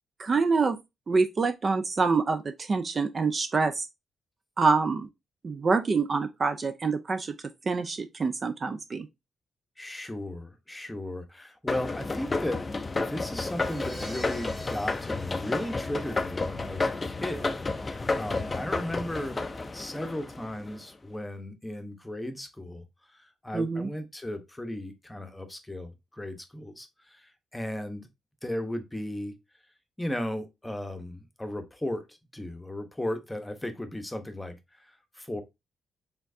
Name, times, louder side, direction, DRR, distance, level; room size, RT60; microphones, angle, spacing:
voice 1, 0.2-0.8 1.1-3.9 4.6-5.1 5.4-7.3 7.7-9.1 23.5-23.9, right 4 dB, 35° right, 0.4 m, -26 dB
voice 2, 9.8-12.6 13.0-19.4 19.7-22.8 23.1-28.1 28.4-29.3 30.0-35.4, left 1 dB, 10° left, 0.9 m, -36 dB
sound 1, 11.7-20.8, left 3 dB, 25° left, 0.4 m, -31 dB
Crash cymbal, 13.4-16.4, equal, 5° right, 1.4 m, -45 dB
4.4 x 3.5 x 2.6 m
cardioid pair, 105°, 0 cm